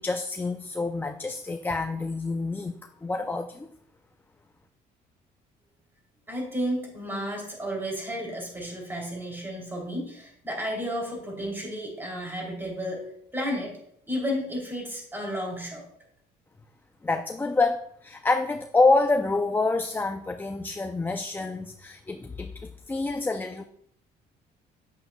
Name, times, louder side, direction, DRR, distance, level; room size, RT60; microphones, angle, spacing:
voice 1, 0.0-2.7 3.0-3.7 17.0-23.7, left 3 dB, 10° left, 6 dB, 0.4 m, -27 dB
voice 2, 6.3-13.0 13.3-13.7 14.1-15.8, equal, 10° right, -1 dB, 3.1 m, -32 dB
9.3 x 7.8 x 2.3 m, 0.68 s
cardioid pair, 110°, 17 cm